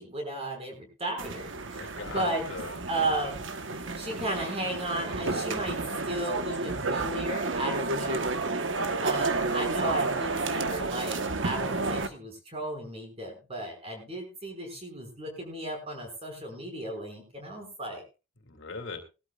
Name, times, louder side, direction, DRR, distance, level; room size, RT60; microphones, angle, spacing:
voice 1, 0.0-2.4 2.9-5.8 6.1-8.4 9.0-18.0, right 1 dB, 30° right, 2 dB, 5.6 m, -34 dB
sound 1, 1.2-12.1, right 3 dB, 70° right, 1.2 m, -31 dB
voice 2, 1.7-2.8 10.1-10.5 18.5-19.0, left 3 dB, 70° left, 4 dB, 2.5 m, -39 dB
20.5 x 13.0 x 2.4 m, 0.30 s
head